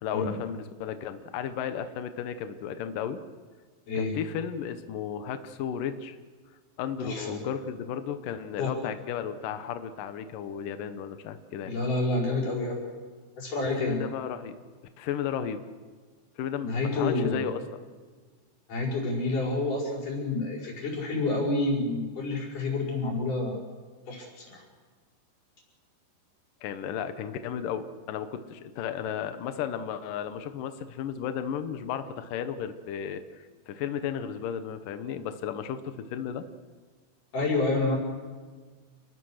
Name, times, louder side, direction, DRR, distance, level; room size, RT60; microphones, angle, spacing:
voice 1, 0.0-3.2 4.0-6.2 6.8-11.7 13.8-14.5 15.0-15.6 16.4-17.6 26.6-36.5, left 8 dB, 80° left, 9 dB, 1.9 m, -34 dB
voice 2, 7.0-7.4 8.6-8.7 11.6-12.9 13.4-14.1 16.6-17.4 18.7-23.6 24.1-24.6 37.3-38.0, left 2 dB, 45° left, -2 dB, 7.1 m, -28 dB
29.0 x 21.0 x 6.5 m, 1.5 s
omnidirectional pair, 5.4 m